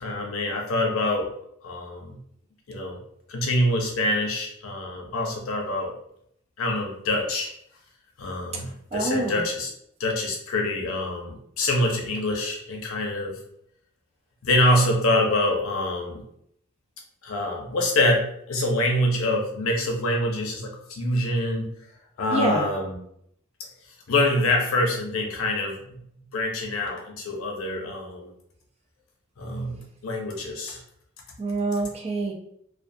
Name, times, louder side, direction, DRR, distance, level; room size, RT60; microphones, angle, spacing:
voice 1, 0.0-1.3 1.6-2.2 2.7-3.0 3.3-5.9 6.6-7.5 8.2-9.7 10.0-13.4 14.4-16.2 17.2-21.7 22.2-23.0 24.1-26.0 26.3-28.3 29.4-30.8, left 1 dB, 80° left, 1 dB, 0.6 m, -25 dB
voice 2, 8.9-9.4 22.3-22.7 31.4-32.3, right 2 dB, 30° right, 1 dB, 0.4 m, -26 dB
2.3 x 2.3 x 2.6 m, 0.71 s
head